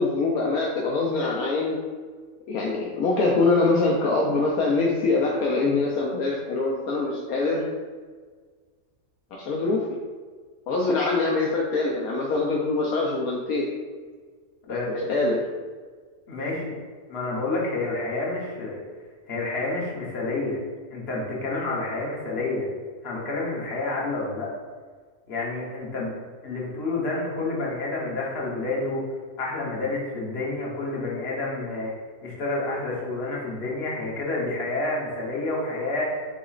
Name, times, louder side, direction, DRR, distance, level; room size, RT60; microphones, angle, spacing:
voice 1, 0.0-1.8 2.5-7.7 9.3-9.9 10.7-13.7 14.7-15.4, left 3 dB, 75° left, -2 dB, 1.0 m, -24 dB
voice 2, 16.3-16.8 17.1-18.8 19.3-20.6 20.9-22.7 23.0-24.5 25.3-26.1 26.4-29.0 29.4-31.9 32.2-36.0, left 2 dB, 45° left, -4 dB, 1.2 m, -29 dB
6.9 x 2.9 x 2.4 m, 1.6 s
omnidirectional pair, 1.6 m